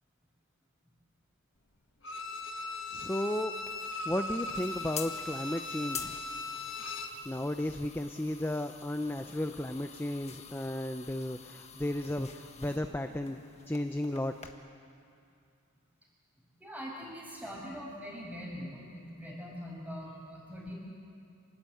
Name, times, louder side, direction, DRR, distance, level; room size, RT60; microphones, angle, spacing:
Bowed string instrument, 2.0-7.2 7.6-7.7, left 2 dB, 55° left, 1.6 m, -39 dB
voice 1, 2.9-3.5 4.1-6.1 7.3-13.4 13.7-14.5, left 1 dB, 10° left, 7 dB, 0.5 m, -34 dB
sound 1, 3.5-14.5, left 7 dB, 30° left, 1.4 m, -48 dB
voice 2, 16.6-20.8, equal, 5° right, -3 dB, 6.2 m, -42 dB
26.5 x 19.5 x 8.5 m, 2.4 s
head